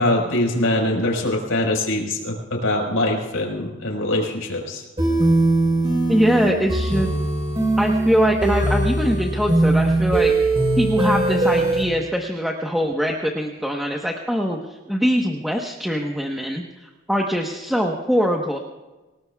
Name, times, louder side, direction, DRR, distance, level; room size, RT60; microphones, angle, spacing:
voice 1, 0.0-4.8, left 1 dB, 80° left, 1 dB, 4.8 m, -23 dB
sound 1, 5.0-11.8, right 2 dB, 25° right, 4.0 m, -20 dB
voice 2, 6.1-7.1 7.8-10.3 10.8-18.6, equal, ahead, -1 dB, 1.1 m, -22 dB
27.5 x 19.0 x 2.4 m, 1.1 s
head